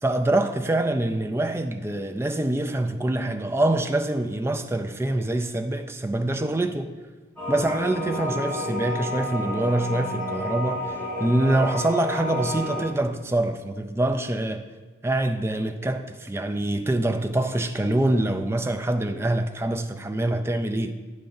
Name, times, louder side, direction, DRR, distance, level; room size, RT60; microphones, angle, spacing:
voice 1, 0.0-6.9 7.5-14.7 15.0-20.9, right 1 dB, 10° right, 0.3 m, -25 dB
sound 1, 7.4-12.8, left 1 dB, 5° left, 2.8 m, -30 dB
9.0 x 3.8 x 6.8 m
head